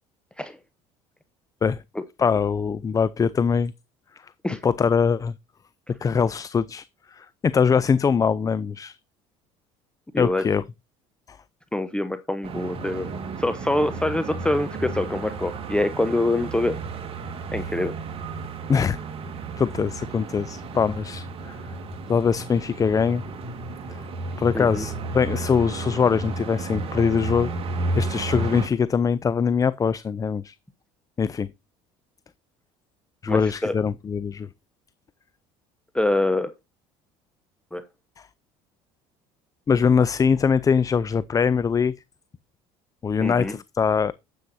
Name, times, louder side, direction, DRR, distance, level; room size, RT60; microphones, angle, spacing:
voice 1, 2.2-3.7 4.6-5.3 6.0-6.9 7.1-9.0 10.2-10.6 11.3-11.4 18.7-19.0 19.6-21.6 22.1-23.2 24.4-27.5 27.9-30.5 31.2-31.5 33.2-34.5 38.2-38.3 39.7-41.9 43.0-44.1, left 6 dB, 25° left, 0.5 m, -22 dB
voice 2, 10.1-10.4 11.7-13.1 13.4-16.8 17.5-18.0 24.5-24.8 33.3-33.7 35.9-36.5 37.7-37.8 43.2-43.5, left 1 dB, 5° left, 0.9 m, -25 dB
sound 1, 12.4-28.7, right 3 dB, 45° right, 2.4 m, -32 dB
9.7 x 8.4 x 2.7 m
supercardioid pair, 90°, 14 cm